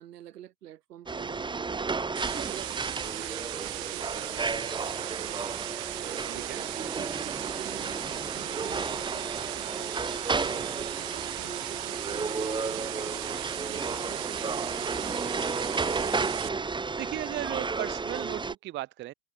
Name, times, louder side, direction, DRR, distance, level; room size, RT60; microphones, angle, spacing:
voice 1, 0.0-1.9 2.3-5.5 6.0-9.9 10.3-13.1 13.6-15.5, right 12 dB, 90° right, 2.5 m, -46 dB
sound 1, 1.1-18.5, right 4 dB, 10° right, 0.8 m, -33 dB
sound 2, 2.2-16.5, right 40 dB or more, 65° right, 2.5 m, -37 dB
voice 2, 16.9-19.1, right 15 dB, 25° right, 0.4 m, -36 dB
hypercardioid pair, 90°, 46 cm